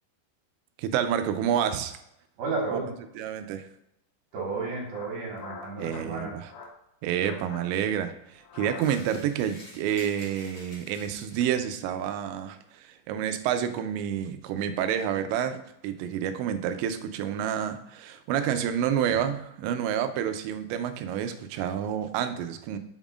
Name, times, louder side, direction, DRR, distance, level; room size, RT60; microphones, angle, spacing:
voice 1, 0.8-2.0 3.2-3.7 5.8-6.5 7.0-22.8, right 9 dB, 90° right, 9 dB, 2.9 m, -29 dB
voice 2, 2.4-2.9 4.3-6.3, right 3 dB, 65° right, -2 dB, 2.9 m, -32 dB
sound 1, 4.3-4.5 4.8-6.1 6.4-6.8 7.1-7.7 8.4-9.3, left 4 dB, 90° left, 1.8 m, -44 dB
sound 2, 8.7-11.7, left 1 dB, 35° left, 2.0 m, -48 dB
7.2 x 5.4 x 2.4 m, 0.80 s
omnidirectional pair, 5.1 m